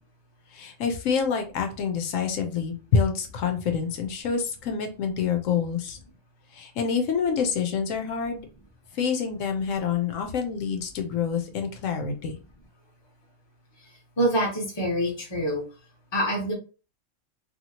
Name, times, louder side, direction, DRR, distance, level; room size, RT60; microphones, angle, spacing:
voice 1, 0.5-6.0 6.5-8.5 8.9-12.4, left 6 dB, 80° left, 5 dB, 1.0 m, -27 dB
voice 2, 14.2-15.6 16.1-16.5, equal, 25° left, 0 dB, 0.9 m, -25 dB
2.8 x 2.7 x 2.8 m, 0.35 s
omnidirectional pair, 1.4 m